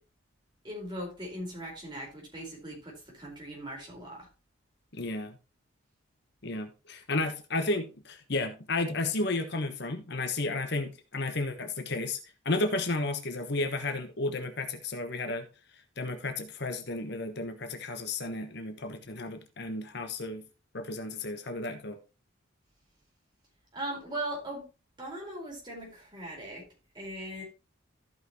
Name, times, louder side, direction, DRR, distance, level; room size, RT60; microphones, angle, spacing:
voice 1, 0.6-4.3 23.7-24.7 25.0-26.6 26.9-27.4, right 1 dB, 20° right, 4.4 m, -39 dB
voice 2, 4.9-5.4 6.4-12.2 12.4-15.5 16.0-20.4 20.7-22.0, left 2 dB, 55° left, 1.2 m, -33 dB
14.5 x 5.9 x 3.0 m
head